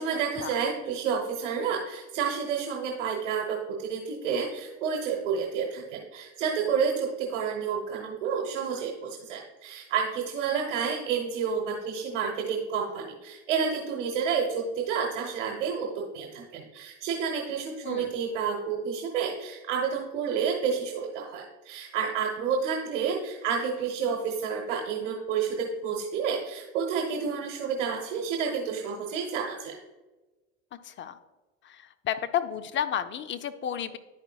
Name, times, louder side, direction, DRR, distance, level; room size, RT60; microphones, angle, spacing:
voice 1, 0.0-29.7, right 6 dB, 90° right, 0 dB, 1.1 m, -30 dB
voice 2, 32.0-34.0, left 9 dB, 35° left, 10 dB, 0.5 m, -31 dB
11.0 x 4.9 x 2.3 m, 1.2 s
supercardioid pair, 95°, 36 cm